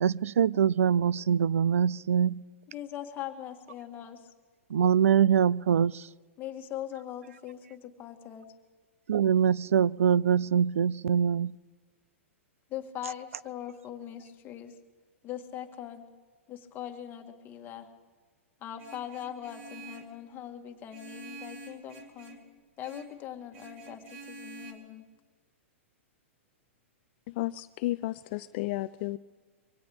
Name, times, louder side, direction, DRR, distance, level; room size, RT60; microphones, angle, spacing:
voice 1, 0.0-2.4 4.7-6.1 9.1-11.6, right 8 dB, 90° right, 0.3 m, -24 dB
voice 2, 2.7-4.3 6.4-8.5 12.7-14.8 15.2-16.1 16.5-17.9 18.6-22.4 22.8-25.0, left 11 dB, 25° left, 1.6 m, -41 dB
Vehicle horn car horn honking, 18.8-20.2 20.9-22.5 22.8-23.2 23.5-24.7, right 3 dB, 65° right, 3.0 m, -47 dB
voice 3, 27.3-29.2, left 18 dB, 45° left, 0.4 m, -32 dB
23.5 x 17.0 x 3.5 m
hypercardioid pair, 135°, 7 cm